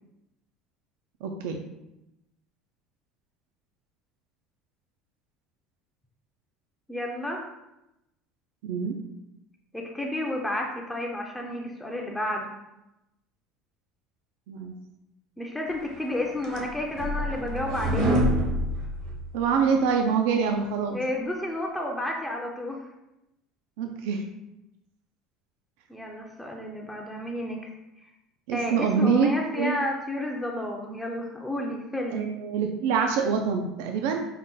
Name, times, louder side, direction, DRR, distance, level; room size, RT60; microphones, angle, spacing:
voice 1, 1.2-1.6 8.6-8.9 14.5-14.7 19.3-21.0 23.8-24.2 28.5-29.3 29.6-29.7 32.1-34.3, right 6 dB, 85° right, 4 dB, 0.4 m, -25 dB
voice 2, 6.9-7.4 9.7-12.5 15.4-18.2 20.9-22.8 25.9-27.7 28.5-32.3, left 1 dB, 5° left, 0 dB, 0.4 m, -31 dB
sound 1, 16.0-19.6, equal, 55° right, 0.8 m, -27 dB
5.5 x 2.2 x 3.7 m, 0.90 s
cardioid pair, 150°, 0 cm